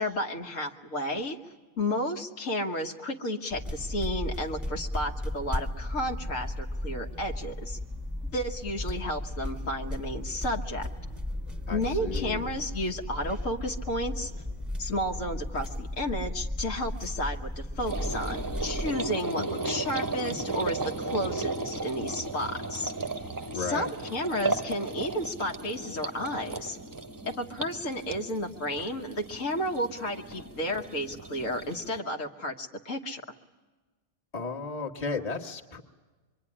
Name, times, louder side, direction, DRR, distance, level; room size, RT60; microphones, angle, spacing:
voice 1, 0.0-1.4 1.8-7.8 8.3-10.9 11.7-14.3 14.8-22.9 23.5-26.8 27.2-33.2, left 1 dB, 75° left, 2 dB, 1.8 m, -32 dB
sound 1, 3.5-18.9, left 1 dB, ahead, 1.2 m, -35 dB
voice 2, 11.7-12.5 19.4-19.7 23.5-23.9 34.3-35.8, left 4 dB, 30° left, 1 dB, 1.5 m, -34 dB
sound 2, 17.9-32.0, right 3 dB, 20° right, 0.7 m, -35 dB
25.0 x 23.5 x 9.9 m, 1.3 s
omnidirectional pair, 1.4 m